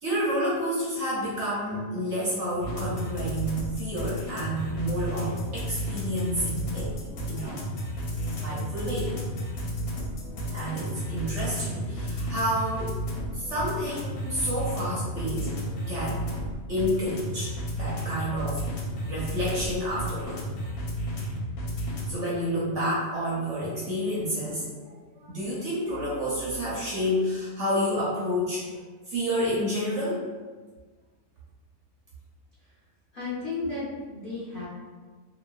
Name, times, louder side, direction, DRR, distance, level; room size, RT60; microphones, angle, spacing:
voice 1, 0.0-7.0 7.3-7.6 8.4-9.1 10.5-13.0 13.3-15.5 15.9-16.2 16.7-18.7 19.0-20.5 22.1-28.7 29.1-30.2, equal, 65° right, -7 dB, 0.8 m, -29 dB
sound 1, 2.6-22.2, equal, 90° left, 1.2 m, -33 dB
voice 2, 33.1-34.7, left 3 dB, 50° left, -11 dB, 0.6 m, -33 dB
3.0 x 2.2 x 2.3 m, 1.4 s
omnidirectional pair, 1.7 m